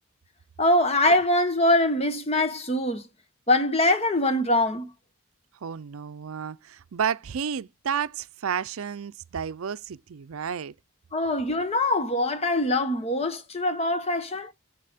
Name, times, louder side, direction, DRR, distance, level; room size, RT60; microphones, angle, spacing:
voice 1, 0.6-3.1 3.5-4.9 11.1-14.5, left 1 dB, 30° left, 0.9 m, -23 dB
voice 2, 5.6-10.7, right 7 dB, 80° right, 0.5 m, -31 dB
7.6 x 7.3 x 3.5 m
head